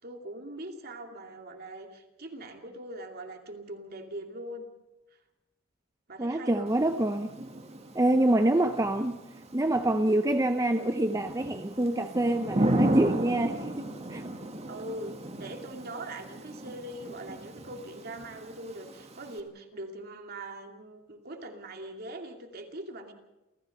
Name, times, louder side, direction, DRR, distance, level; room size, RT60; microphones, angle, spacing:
voice 1, 0.0-4.7 6.1-6.8 8.2-8.6 14.7-23.1, right 1 dB, 50° right, 4 dB, 2.6 m, -42 dB
voice 2, 6.2-7.3 7.9-9.2 9.5-14.2, right 1 dB, 15° right, 7 dB, 0.7 m, -26 dB
Thunder / Rain, 6.7-19.4, right 1 dB, 30° right, 1.8 m, -35 dB
29.0 x 14.5 x 6.6 m, 1.0 s
head